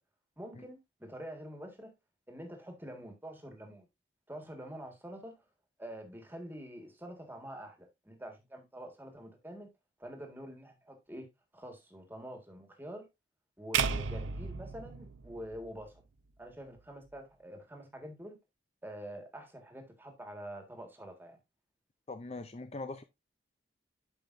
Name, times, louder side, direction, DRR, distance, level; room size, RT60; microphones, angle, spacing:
voice 1, 0.4-1.9 2.3-3.9 4.3-5.4 5.8-9.7 10.0-11.3 11.5-13.1 13.6-16.0 16.4-18.4 18.8-21.4, equal, 10° right, 1.7 m, -46 dB
sound 1, 13.7-16.0, right 6 dB, 90° right, 0.6 m, -34 dB
voice 2, 22.1-23.0, left 3 dB, 30° left, 0.5 m, -41 dB
12.0 x 5.2 x 2.6 m
head